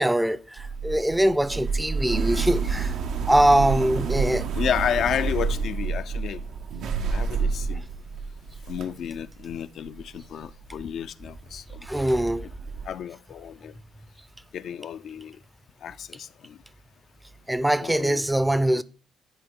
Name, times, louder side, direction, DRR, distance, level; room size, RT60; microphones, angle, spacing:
voice 1, 0.0-2.9 3.3-4.5 11.8-12.4 17.5-18.8, right 1 dB, 10° right, 0.4 m, -22 dB
sound 1, 0.6-10.2 10.4-11.0 11.4-11.5 11.7-12.9, right 5 dB, 75° right, 0.6 m, -29 dB
voice 2, 4.6-6.4 7.1-7.8 8.7-12.1 12.4-12.5 12.8-13.7 14.5-15.4 15.8-16.6 17.8-18.3 18.7-18.8, left 9 dB, 70° left, 0.3 m, -31 dB
9.5 x 4.1 x 3.6 m
supercardioid pair, 65°, 0 cm